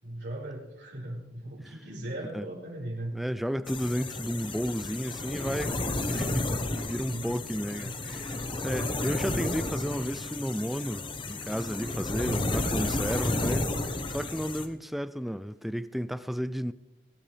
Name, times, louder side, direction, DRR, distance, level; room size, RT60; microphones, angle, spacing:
voice 1, 0.0-3.2 7.1-7.3 7.8-8.1 12.2-12.6 13.3-13.7, right 1 dB, 70° right, 5.3 m, -38 dB
voice 2, 3.1-13.7 14.1-16.7, equal, ahead, 0.4 m, -33 dB
sound 1, 3.7-14.7, left 2 dB, 30° left, 1.1 m, -32 dB
23.0 x 11.5 x 3.4 m
head